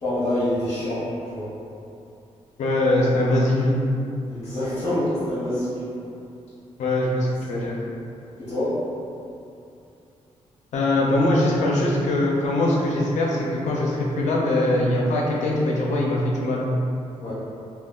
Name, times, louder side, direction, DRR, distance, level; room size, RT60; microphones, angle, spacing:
voice 1, 0.0-1.5 4.3-5.9 7.5-7.7 8.4-8.8 17.2-17.3, left 1 dB, 40° left, -12 dB, 0.9 m, -26 dB
voice 2, 2.6-3.8 6.8-7.7 10.7-16.6, left 1 dB, 85° left, -3 dB, 0.6 m, -22 dB
2.3 x 2.3 x 3.6 m, 2.6 s
wide cardioid pair, 155°, 12 cm